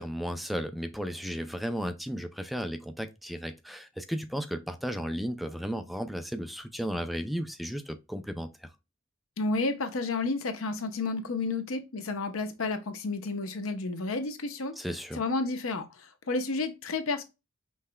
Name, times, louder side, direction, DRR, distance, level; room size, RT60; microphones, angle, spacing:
voice 1, 0.0-8.7 14.8-15.2, equal, ahead, 0.4 m, -34 dB
voice 2, 9.4-14.8 15.1-17.2, left 3 dB, 85° left, 0.8 m, -31 dB
5.5 x 3.2 x 2.2 m
head